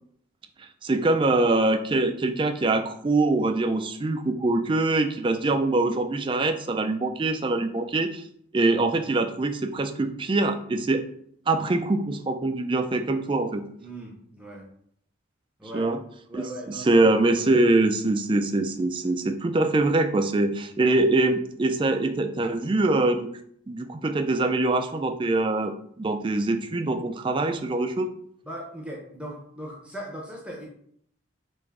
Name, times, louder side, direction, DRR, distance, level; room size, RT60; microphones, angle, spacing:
voice 1, 0.6-8.2 8.5-11.0 11.5-13.6 15.7-16.0 16.3-23.3 23.7-28.1, right 2 dB, 25° right, 7 dB, 0.3 m, -24 dB
voice 2, 13.8-14.6 15.6-15.9 16.3-17.0 28.4-30.7, right 1 dB, 5° right, -2 dB, 0.7 m, -39 dB
3.6 x 3.0 x 4.6 m, 0.65 s
head